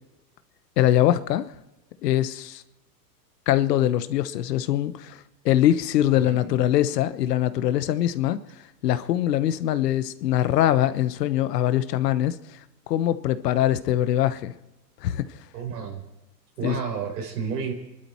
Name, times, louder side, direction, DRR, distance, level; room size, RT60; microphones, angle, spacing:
voice 1, 0.8-1.4 2.0-2.6 3.5-8.4 8.8-12.4 12.9-14.5 15.0-15.3 16.6-16.8, left 12 dB, 70° left, 1.2 m, -22 dB
voice 2, 6.1-6.6 15.5-16.0 16.6-17.7, right 6 dB, 70° right, 4.7 m, -31 dB
26.5 x 12.0 x 4.5 m
hypercardioid pair, 115°, 49 cm